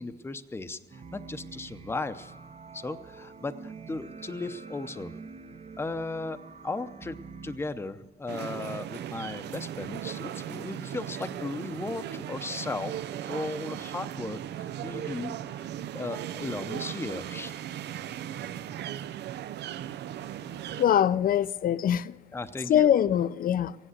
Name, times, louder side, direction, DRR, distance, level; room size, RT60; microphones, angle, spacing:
voice 1, 0.0-2.3 2.7-5.1 5.8-12.9 13.2-17.5 22.3-22.9, left 3 dB, 15° left, 0.7 m, -36 dB
sound 1, 0.9-7.6, right 5 dB, 40° right, 0.8 m, -46 dB
sound 2, 8.3-20.9, right 11 dB, 80° right, 0.5 m, -37 dB
voice 2, 20.8-22.1 22.7-23.8, left 10 dB, 55° left, 0.5 m, -23 dB
16.0 x 10.0 x 8.1 m
cardioid pair, 115°, 17 cm